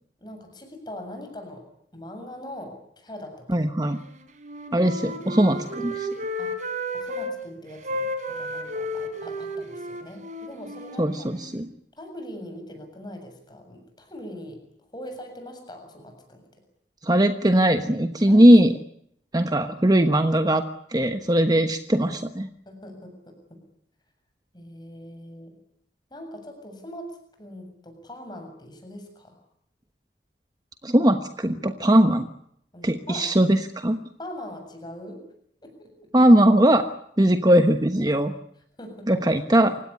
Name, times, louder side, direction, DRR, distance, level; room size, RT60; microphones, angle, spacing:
voice 1, 0.2-1.7 1.9-3.7 6.4-6.5 6.9-11.3 12.0-14.6 14.9-16.6 18.3-18.5 22.7-23.6 24.5-25.5 26.1-29.4 32.7-33.3 34.2-35.2 35.6-36.1 38.8-39.1, left 1 dB, 25° left, 5 dB, 7.4 m, -41 dB
voice 2, 3.5-4.0 4.7-6.1 11.0-11.7 17.0-18.7 19.3-20.6 20.9-22.5 30.8-32.3 32.8-34.0 36.1-36.9 37.2-38.3 39.1-39.8, right 1 dB, 20° right, 8 dB, 1.2 m, -19 dB
Wind instrument woodwind instrument, 4.4-7.3 7.8-11.7, equal, 45° right, 4.0 m, -33 dB
28.5 x 16.5 x 10.0 m, 0.73 s
head